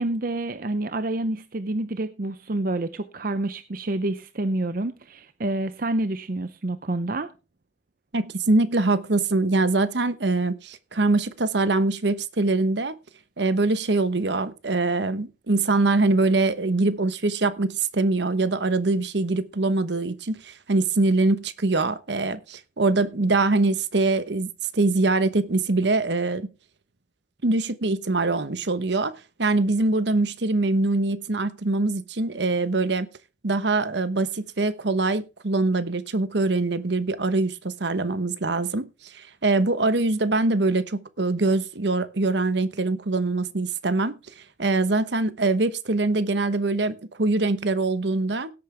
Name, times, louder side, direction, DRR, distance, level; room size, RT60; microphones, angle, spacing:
voice 1, 0.0-7.3, right 2 dB, 50° right, 0.7 m, -28 dB
voice 2, 8.1-12.9 13.4-26.5 27.4-29.1 29.4-33.1 33.4-44.2 44.6-48.5, right 2 dB, 65° right, 1.0 m, -23 dB
17.0 x 8.7 x 3.4 m
head